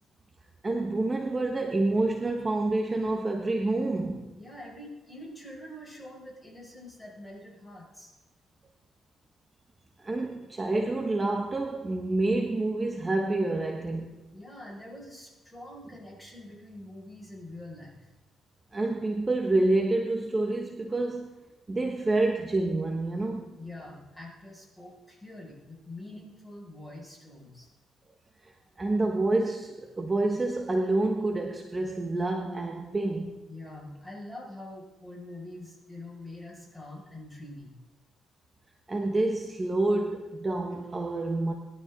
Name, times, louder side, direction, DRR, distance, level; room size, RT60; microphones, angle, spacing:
voice 1, 0.6-4.4 10.0-14.2 18.7-21.3 21.7-23.4 28.4-28.5 28.8-33.4 38.9-41.5, right 2 dB, 25° right, 2 dB, 1.3 m, -28 dB
voice 2, 4.4-8.1 14.3-18.1 23.6-27.7 33.5-37.7, left 1 dB, 10° left, -2 dB, 5.6 m, -45 dB
21.0 x 12.5 x 3.8 m, 1.1 s
cardioid pair, 90°, 0 cm